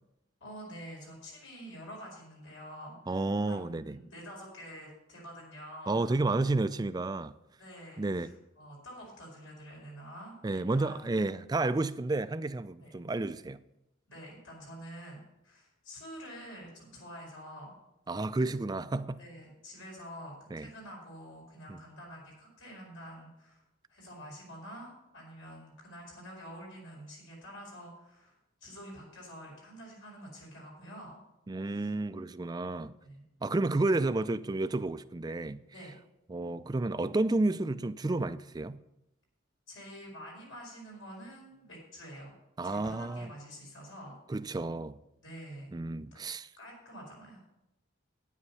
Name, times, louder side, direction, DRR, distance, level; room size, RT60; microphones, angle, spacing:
voice 1, 0.4-6.3 7.6-11.0 12.8-13.0 14.1-17.8 19.2-23.6 23.9-31.2 31.6-31.9 33.0-33.2 33.8-33.9 35.7-35.9 39.7-42.3 42.6-44.2 45.2-45.7 46.1-46.2 46.6-47.4, equal, 80° left, 4.8 m, -47 dB
voice 2, 3.1-4.0 5.9-7.3 8.0-8.3 10.4-13.6 18.1-19.2 20.5-20.7 21.7-21.8 31.5-32.9 33.4-35.6 36.3-38.8 42.6-43.3 44.3-45.0 45.7-46.5, right 2 dB, 20° right, 0.3 m, -31 dB
9.8 x 9.4 x 5.6 m
head